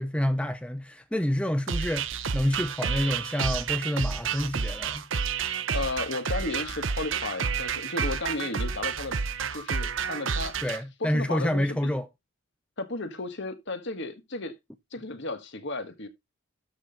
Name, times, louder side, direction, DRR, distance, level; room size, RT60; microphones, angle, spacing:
voice 1, 0.0-5.0 10.6-12.1, left 1 dB, 5° left, 0.5 m, -28 dB
sound 1, 1.7-10.8, right 6 dB, 60° right, 0.8 m, -30 dB
voice 2, 5.7-9.2 9.5-10.6 11.0-11.9 12.8-14.5 14.9-16.1, left 2 dB, 55° left, 1.6 m, -34 dB
12.5 x 4.3 x 5.1 m
head